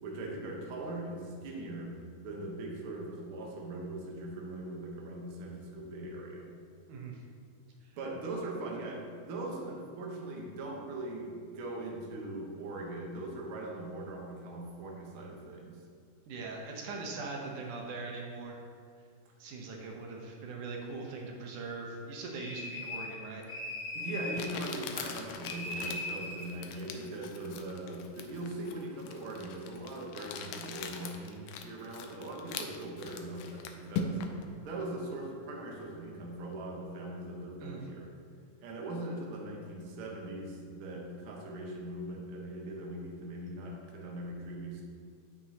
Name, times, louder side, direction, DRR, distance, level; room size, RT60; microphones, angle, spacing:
voice 1, 0.0-1.9 2.2-6.5 8.0-15.8 23.9-34.2 34.6-38.1 38.6-44.8, right 2 dB, 60° right, -2 dB, 1.5 m, -40 dB
voice 2, 6.9-7.2 16.3-18.6 19.4-23.4 37.6-37.8, right 3 dB, 75° right, 0 dB, 2.3 m, -41 dB
sound 1, 22.3-23.2 23.5-24.4 25.4-26.5, left 2 dB, 20° left, 1.2 m, -39 dB
Crumpling crinkling, 23.4-23.5 24.3-34.4, left 5 dB, 80° left, 2.0 m, -41 dB
8.7 x 7.3 x 2.9 m, 2.1 s
omnidirectional pair, 3.6 m